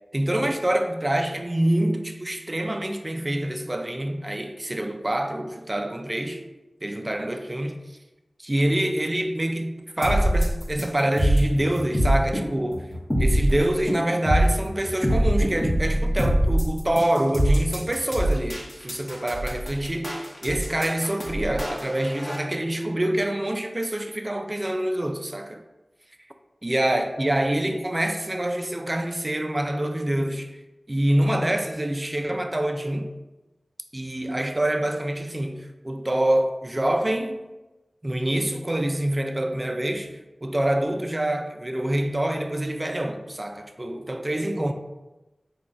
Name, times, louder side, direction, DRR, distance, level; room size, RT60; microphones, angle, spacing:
voice 1, 0.1-6.4 6.8-7.8 8.4-12.9 13.2-25.6 26.6-30.5 30.9-33.1 33.9-37.4 38.0-44.7, right 1 dB, 30° right, 0.4 m, -26 dB
sound 1, 10.0-22.4, equal, 30° left, 0.9 m, -24 dB
4.3 x 2.3 x 3.8 m
wide cardioid pair, 70°, 0 cm